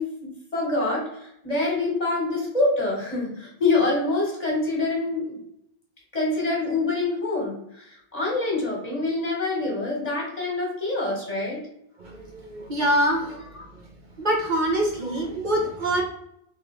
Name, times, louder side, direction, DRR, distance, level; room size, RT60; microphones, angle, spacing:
voice 1, 0.0-5.4 6.1-11.6 13.3-13.7 15.0-15.2, left 2 dB, 40° left, -3 dB, 1.3 m, -26 dB
voice 2, 12.0-13.4 14.2-16.0, right 1 dB, 50° right, -2 dB, 0.9 m, -24 dB
3.7 x 3.1 x 3.1 m, 0.76 s
omnidirectional pair, 1.1 m